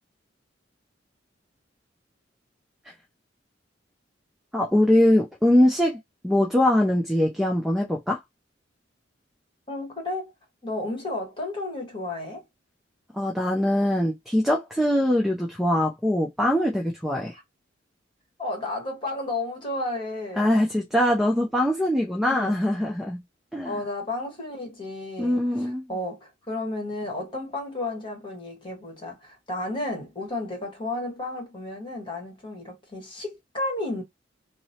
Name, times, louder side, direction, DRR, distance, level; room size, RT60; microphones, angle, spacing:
voice 1, 4.5-6.0 6.2-8.2 13.1-17.3 20.4-23.2 23.5-23.8 25.2-25.8, left 1 dB, ahead, 0.4 m, -22 dB
voice 2, 9.7-10.3 10.6-12.4 18.4-20.5 22.3-22.6 23.6-34.0, left 2 dB, 25° left, 1.3 m, -32 dB
2.9 x 2.0 x 2.7 m
head